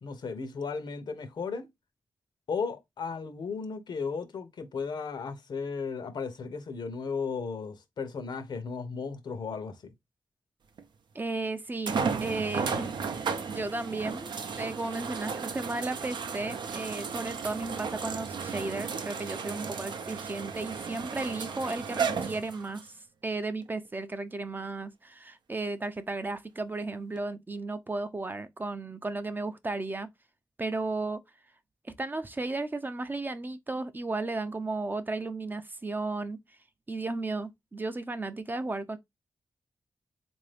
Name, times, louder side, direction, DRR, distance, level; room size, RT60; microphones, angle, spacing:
voice 1, 0.0-1.7 2.5-9.9, left 5 dB, 75° left, 0.7 m, -35 dB
sound 1, 10.8-10.9 11.9-22.9 23.6-23.7 27.2-27.3, right 5 dB, 80° right, 0.6 m, -34 dB
voice 2, 11.1-13.0 13.5-23.0 23.2-30.1 30.6-31.2 31.8-36.4 36.9-39.0, right 3 dB, 25° right, 0.4 m, -34 dB
3.7 x 2.6 x 3.3 m
cardioid pair, 85°, 8 cm